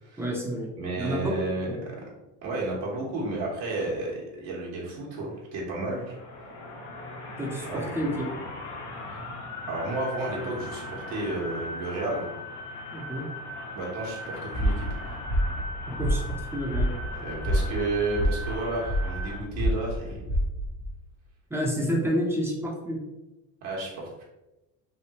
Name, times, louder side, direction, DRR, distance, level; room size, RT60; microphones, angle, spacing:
voice 1, 0.2-1.4 1.7-1.8 7.4-8.3 12.9-13.3 15.9-16.9 21.5-23.0, equal, 5° right, -1 dB, 0.4 m, -29 dB
voice 2, 0.8-1.9 2.4-6.1 7.7-8.0 9.1-9.3 9.7-12.3 13.7-15.1 17.1-20.2 23.6-24.2, right 2 dB, 75° right, -4 dB, 1.1 m, -32 dB
sound 1, 5.7-19.4, left 1 dB, 75° left, 1.1 m, -39 dB
sound 2, 14.5-20.9, equal, 40° left, 0.7 m, -28 dB
3.3 x 2.3 x 2.8 m, 0.99 s
supercardioid pair, 115°, 47 cm